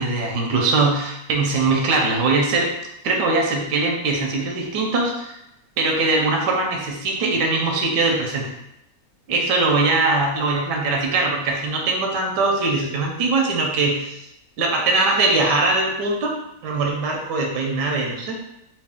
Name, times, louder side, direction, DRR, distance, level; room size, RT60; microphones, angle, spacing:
voice 1, 0.0-2.7 3.0-5.4 5.8-8.5 9.3-14.2 14.6-16.3 16.6-18.4, right 3 dB, 85° right, 1 dB, 1.3 m, -21 dB
3.3 x 2.4 x 3.5 m, 0.85 s
omnidirectional pair, 1.8 m